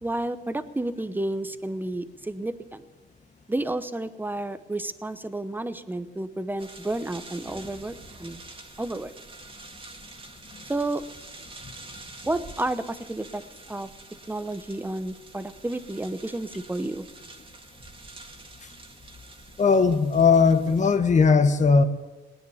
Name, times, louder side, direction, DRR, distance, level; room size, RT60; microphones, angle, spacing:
voice 1, 0.0-2.8 3.5-7.9 8.2-8.4 8.8-9.1 10.7-11.0 12.2-13.4 13.7-13.9 14.3-17.0, right 2 dB, 10° right, 12 dB, 0.9 m, -31 dB
sound 1, 6.6-21.0, right 2 dB, 25° right, 2.0 m, -47 dB
voice 2, 19.6-21.8, left 5 dB, 35° left, 10 dB, 1.2 m, -18 dB
19.0 x 9.6 x 7.2 m, 1.2 s
cardioid pair, 90°, 20 cm